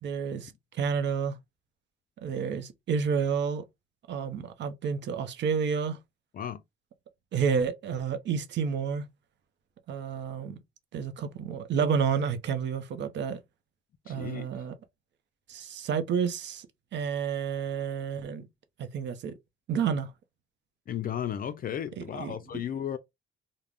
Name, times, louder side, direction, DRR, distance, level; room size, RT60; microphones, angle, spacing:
voice 1, 0.0-1.4 2.2-3.6 4.1-6.0 7.3-9.0 9.9-10.6 10.9-13.4 14.1-14.7 15.5-16.7 16.9-18.5 18.8-19.3 19.7-20.1 22.0-22.4, right 6 dB, 65° right, 0.6 m, -30 dB
voice 2, 14.1-14.5 20.9-23.0, left 9 dB, 45° left, 0.4 m, -34 dB
2.3 x 2.0 x 3.4 m
cardioid pair, 90°, 20 cm